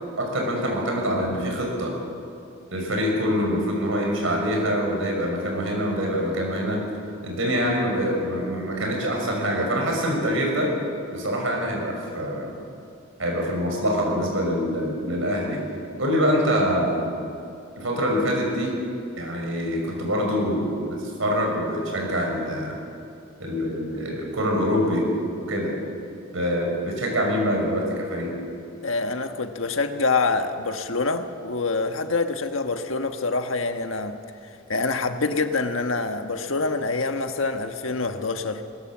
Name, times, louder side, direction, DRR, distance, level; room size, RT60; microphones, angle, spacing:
voice 1, 0.2-1.9 2.7-6.8 7.2-10.7 11.1-12.6 13.2-15.6 16.0-17.2 17.8-18.8 19.2-22.8 23.4-25.1 25.4-25.7 26.3-28.3, equal, 70° right, 0 dB, 6.1 m, -25 dB
voice 2, 28.8-34.2 34.7-38.6, left 3 dB, 75° left, 7 dB, 1.4 m, -26 dB
21.0 x 20.0 x 7.3 m, 2.6 s
head